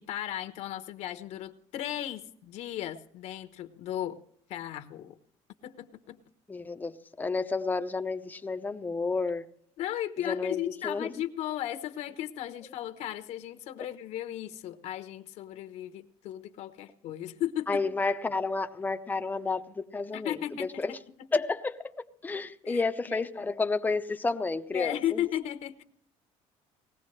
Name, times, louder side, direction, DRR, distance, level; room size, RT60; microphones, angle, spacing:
voice 1, 0.1-4.2 4.5-5.2 5.6-6.2 9.8-17.8 20.1-20.8 22.6-23.3 24.7-25.8, left 12 dB, 65° left, 1.0 m, -35 dB
voice 2, 6.5-9.5 10.2-11.1 17.7-21.0 21.3-25.2, left 3 dB, 15° left, 0.7 m, -31 dB
20.0 x 15.5 x 3.2 m
cardioid pair, 140°, 13 cm